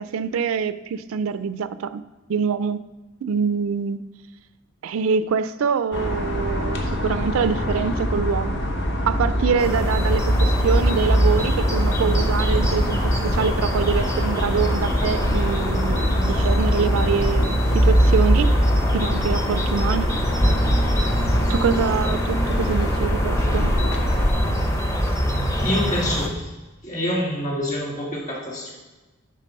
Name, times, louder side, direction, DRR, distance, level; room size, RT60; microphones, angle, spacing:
voice 1, 0.0-2.0 2.3-2.8 3.2-4.0 4.8-8.6 9.1-18.6 18.9-20.2 21.5-23.8, right 6 dB, 70° right, 13 dB, 0.4 m, -25 dB
sound 1, 5.9-24.3, equal, 50° left, 1.1 m, -23 dB
sound 2, 9.6-26.3, equal, 15° left, 0.6 m, -24 dB
voice 2, 25.6-26.4 26.8-28.7, left 1 dB, 35° left, -2 dB, 2.3 m, -26 dB
10.5 x 4.0 x 5.3 m, 1.2 s
head